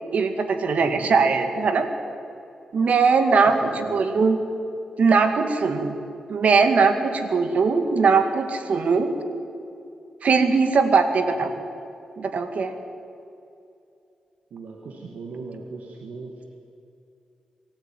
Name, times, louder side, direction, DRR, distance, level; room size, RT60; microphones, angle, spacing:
voice 1, 0.1-1.9 2.7-3.6 3.9-4.4 5.0-5.9 6.3-9.1 10.2-11.6 12.2-12.7, right 4 dB, 70° right, 7 dB, 2.1 m, -20 dB
voice 2, 0.7-1.3 3.5-4.0 11.2-11.5 14.5-16.4, right 4 dB, 85° right, 0 dB, 2.1 m, -38 dB
23.5 x 13.5 x 9.3 m, 2.6 s
cardioid pair, 60°, 2 cm